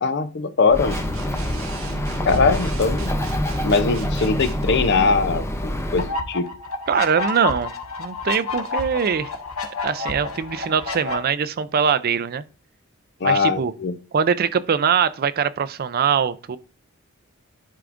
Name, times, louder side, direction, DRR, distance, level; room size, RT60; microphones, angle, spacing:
voice 1, 0.0-1.0 2.3-3.1 3.6-6.5 13.2-13.9, left 4 dB, 55° left, 0.6 m, -21 dB
Bird, 0.7-6.1, equal, 15° left, 0.6 m, -26 dB
sound 1, 0.9-4.7, right 1 dB, 75° right, 0.9 m, -32 dB
sound 2, 6.0-11.2, left 4 dB, 70° left, 1.3 m, -29 dB
voice 2, 6.9-7.7 8.0-9.3 9.8-12.4 13.2-13.7 14.1-16.6, right 7 dB, 45° right, 0.4 m, -22 dB
11.0 x 4.6 x 2.5 m
head